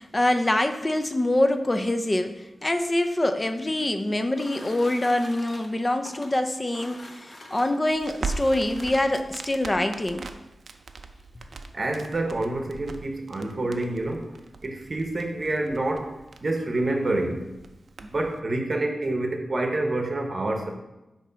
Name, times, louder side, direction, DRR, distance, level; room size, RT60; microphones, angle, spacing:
voice 1, 0.0-10.3, left 1 dB, 20° left, 8 dB, 0.4 m, -25 dB
sound 1, 3.2-9.3 10.2-10.3 10.7-10.8 11.1-11.5, left 1 dB, 45° left, 1.1 m, -46 dB
Crackle, 7.9-18.4, right 4 dB, 65° right, 0.5 m, -40 dB
voice 2, 11.7-14.3 14.6-16.1 16.4-17.4 18.0-20.7, right 2 dB, 40° right, 3 dB, 0.8 m, -27 dB
8.4 x 3.1 x 5.5 m, 1.0 s
wide cardioid pair, 145°, 0 cm